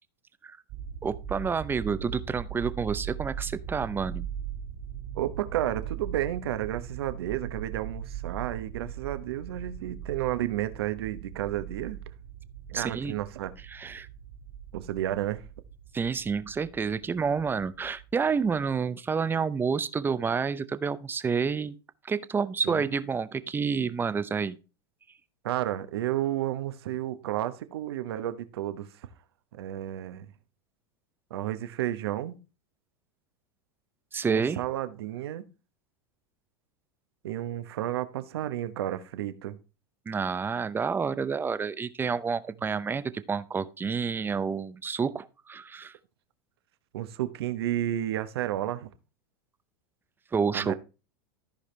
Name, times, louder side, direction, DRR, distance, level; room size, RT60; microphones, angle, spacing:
sound 1, 0.7-18.8, right 8 dB, 60° right, 1.9 m, -40 dB
voice 1, 1.0-4.3 12.7-13.1 13.7-14.1 15.9-21.8 22.0-24.6 34.1-34.6 40.1-46.0 50.3-50.7, right 5 dB, 15° right, 0.6 m, -29 dB
voice 2, 5.1-12.0 12.7-13.5 14.7-15.4 22.6-22.8 25.4-29.1 29.5-30.3 31.3-32.4 34.3-35.5 37.2-39.6 46.9-48.9 50.5-50.7, right 13 dB, 75° right, 1.0 m, -32 dB
14.0 x 5.0 x 3.2 m
hypercardioid pair, 115°, 13 cm